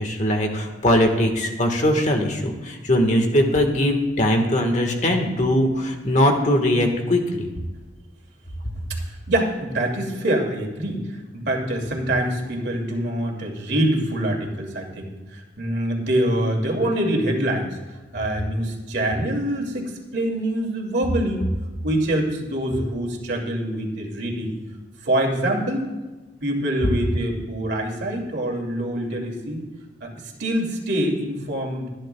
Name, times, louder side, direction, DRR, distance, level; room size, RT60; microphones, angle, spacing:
voice 1, 0.0-7.5, left 1 dB, 40° left, 4 dB, 1.4 m, -20 dB
voice 2, 9.1-17.8 18.1-21.5 21.8-24.5 25.0-25.9 26.4-29.6 30.0-30.1 30.4-31.9, right 1 dB, 65° right, 0 dB, 2.5 m, -25 dB
25.0 x 10.5 x 2.3 m, 1.2 s
head